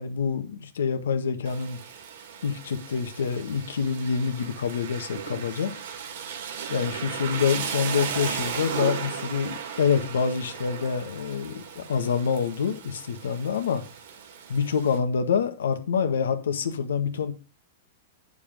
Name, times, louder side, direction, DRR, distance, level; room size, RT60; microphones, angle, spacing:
voice 1, 0.0-1.8 2.4-5.7 6.7-13.8 14.5-17.3, left 6 dB, 85° left, 1.6 m, -26 dB
Rain, 1.4-15.0, right 7 dB, 70° right, 3.1 m, -36 dB
9.2 x 7.1 x 5.3 m
hypercardioid pair, 135°, 0 cm